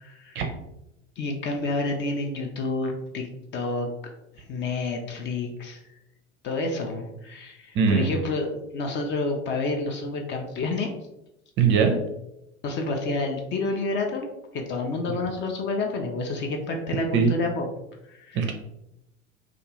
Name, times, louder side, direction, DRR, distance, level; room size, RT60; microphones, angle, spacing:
voice 1, 0.0-0.4 1.2-3.9 4.5-5.8 6.4-10.9 12.6-14.3 14.5-17.7 18.1-18.4, left 2 dB, 35° left, 3 dB, 0.4 m, -29 dB
voice 2, 7.7-8.1 11.6-12.0 17.1-17.4 18.3-18.5, right 6 dB, 35° right, 4 dB, 0.5 m, -20 dB
2.4 x 2.4 x 3.0 m, 0.87 s
figure-of-eight pair, 75°, 35 cm